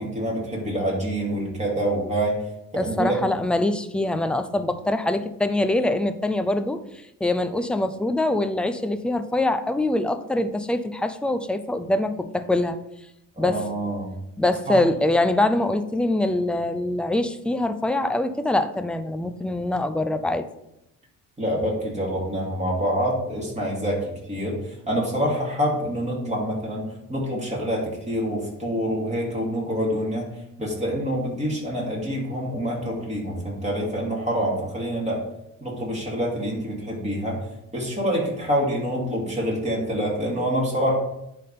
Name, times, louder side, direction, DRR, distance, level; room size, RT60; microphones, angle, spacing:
voice 1, 0.0-2.4 2.7-3.1 13.4-14.1 14.7-14.8 21.4-30.3 30.6-35.2 35.6-37.4 37.7-40.9, equal, 20° right, -4 dB, 2.5 m, -26 dB
voice 2, 2.8-6.8 7.2-12.8 13.4-13.6 14.4-20.5, left 1 dB, 5° left, 9 dB, 0.4 m, -24 dB
10.5 x 3.6 x 4.2 m, 0.83 s
cardioid pair, 130°, 35 cm